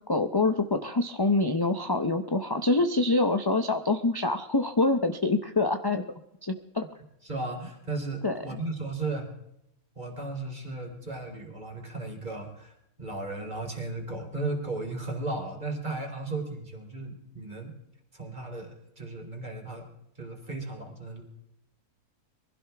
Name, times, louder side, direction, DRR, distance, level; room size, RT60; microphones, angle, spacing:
voice 1, 0.1-6.0 6.4-6.8 8.2-8.6, left 2 dB, 30° left, 6 dB, 0.4 m, -26 dB
voice 2, 7.2-9.3 10.0-17.7 18.1-19.9 20.2-21.2, right 2 dB, 30° right, 1 dB, 3.4 m, -35 dB
23.5 x 16.0 x 3.4 m, 0.81 s
omnidirectional pair, 1.6 m